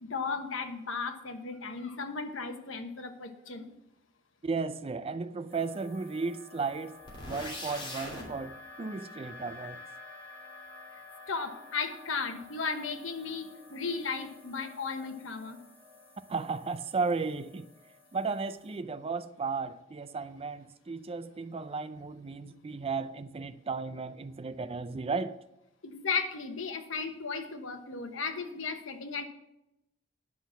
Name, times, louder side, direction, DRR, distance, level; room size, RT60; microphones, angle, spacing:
voice 1, 0.0-3.7 11.3-15.6 25.8-29.3, left 4 dB, 75° left, 1.1 m, -35 dB
voice 2, 4.4-7.0 7.3-9.8 16.3-17.7 18.1-25.4, right 4 dB, 30° right, 0.4 m, -34 dB
sound 1, 5.5-18.8, left 3 dB, 10° left, 2.4 m, -51 dB
sound 2, 7.1-8.3, left 1 dB, 25° left, 3.0 m, -40 dB
10.0 x 6.0 x 7.1 m
head